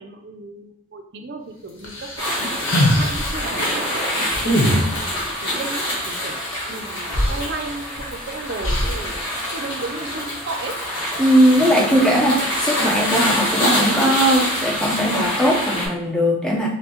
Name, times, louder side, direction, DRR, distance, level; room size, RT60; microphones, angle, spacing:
voice 1, 0.0-4.5 4.9-6.3 6.7-9.2 9.5-10.7, right 3 dB, 55° right, 5 dB, 0.5 m, -34 dB
sound 1, 1.8-3.5 4.3-5.2 6.7-6.8 7.1-8.1 8.6-9.1, equal, 85° left, 1.1 m, -22 dB
sound 2, 2.2-15.9, equal, 25° left, 1.2 m, -25 dB
voice 2, 4.5-4.9 11.2-16.7, equal, 5° left, -1 dB, 0.5 m, -19 dB
5.4 x 2.1 x 2.9 m, 0.78 s
head